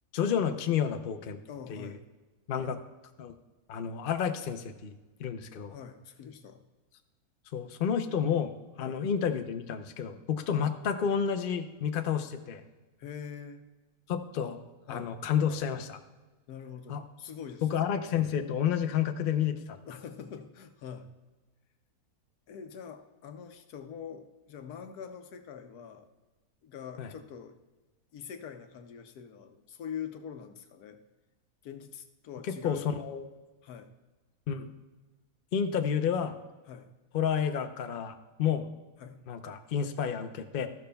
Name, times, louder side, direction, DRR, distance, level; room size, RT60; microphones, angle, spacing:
voice 1, 0.1-1.4 1.7-1.9 2.5-2.8 3.2-3.3 3.7-4.9 5.2-5.7 7.5-8.5 8.8-12.6 14.1-14.6 14.9-16.0 16.9-17.0 17.6-19.8 27.0-27.1 32.5-33.2 34.5-34.6 35.5-36.3 37.1-38.1 38.4-38.7 39.3-40.7, left 8 dB, 55° left, 7 dB, 0.6 m, -30 dB
voice 2, 1.4-2.0 2.5-2.8 5.7-6.6 8.8-9.0 10.5-10.6 13.0-13.6 14.9-15.1 16.5-18.0 19.9-21.1 22.5-26.1 26.6-27.6 28.1-31.0 31.6-32.9 33.6-33.9 36.7-36.9 39.0-39.2, left 7 dB, 75° left, 7 dB, 1.3 m, -44 dB
13.5 x 12.0 x 2.3 m, 1.2 s
omnidirectional pair, 1.6 m